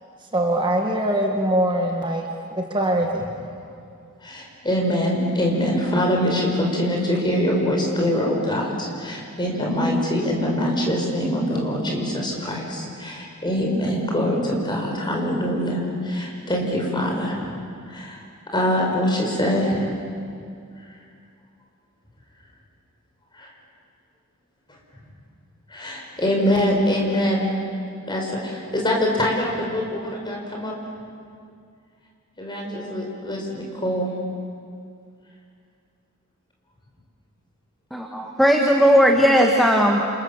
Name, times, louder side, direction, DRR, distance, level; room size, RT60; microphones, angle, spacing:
voice 1, 0.3-2.3 2.6-3.3, right 1 dB, 20° right, 1 dB, 1.7 m, -22 dB
voice 2, 4.2-17.6 17.9-18.2 18.5-20.0 23.3-23.5 25.7-27.6 28.1-30.7 32.4-34.1, equal, 20° left, -1 dB, 5.5 m, -24 dB
voice 3, 37.9-40.0, equal, ahead, 1 dB, 1.7 m, -17 dB
29.5 x 27.5 x 7.4 m, 2.3 s
head